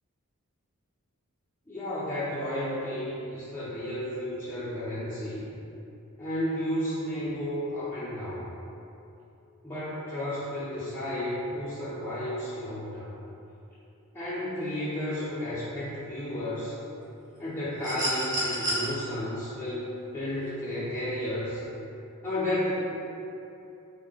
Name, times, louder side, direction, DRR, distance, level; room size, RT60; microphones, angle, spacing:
voice 1, 1.7-5.5 6.2-8.5 9.6-13.1 14.1-16.8 17.4-21.6 22.2-22.7, left 1 dB, 10° left, -11 dB, 0.6 m, -32 dB
sound 1, 17.8-18.9 20.4-20.5, right 1 dB, 40° right, 0.9 m, -30 dB
3.7 x 2.7 x 3.5 m, 2.8 s
head